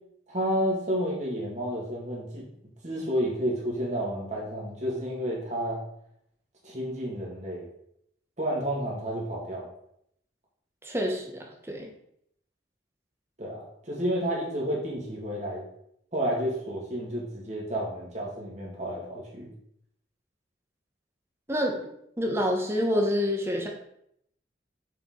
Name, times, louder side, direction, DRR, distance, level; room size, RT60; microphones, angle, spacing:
voice 1, 0.3-2.5 2.8-5.8 6.6-7.7 8.4-9.7 13.4-15.7 16.1-19.5, equal, 40° right, -3 dB, 2.0 m, -31 dB
voice 2, 10.8-11.9 21.5-21.8 22.2-23.7, equal, 15° right, 1 dB, 1.0 m, -27 dB
6.9 x 4.6 x 3.8 m, 0.74 s
head